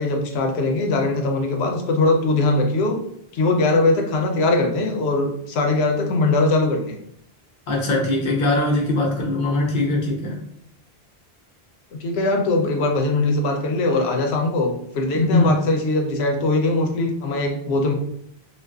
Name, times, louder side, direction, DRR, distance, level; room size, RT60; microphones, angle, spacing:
voice 1, 0.0-3.0 3.3-7.0 12.0-17.9, left 2 dB, 85° left, 3 dB, 0.8 m, -21 dB
voice 2, 7.7-10.3 15.1-15.6, left 2 dB, 55° left, -2 dB, 0.8 m, -21 dB
2.4 x 2.3 x 2.2 m, 0.71 s
omnidirectional pair, 1.1 m